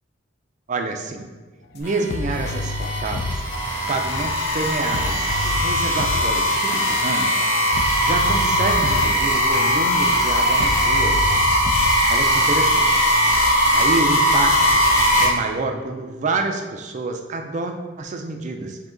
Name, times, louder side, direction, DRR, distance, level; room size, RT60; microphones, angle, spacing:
voice 1, 0.7-1.3 1.7-3.4 3.9-7.4 8.0-11.3 12.1-13.1 13.4-14.8 15.2-18.8, right 3 dB, 35° right, 5 dB, 0.4 m, -28 dB
sound 1, 1.7-1.8 2.1-4.7 4.9-10.3 10.6-12.2, left 2 dB, 50° left, 0.3 m, -30 dB
sound 2, 1.8-15.2, equal, 10° left, 1.0 m, -20 dB
4.9 x 2.8 x 3.7 m, 1.3 s
head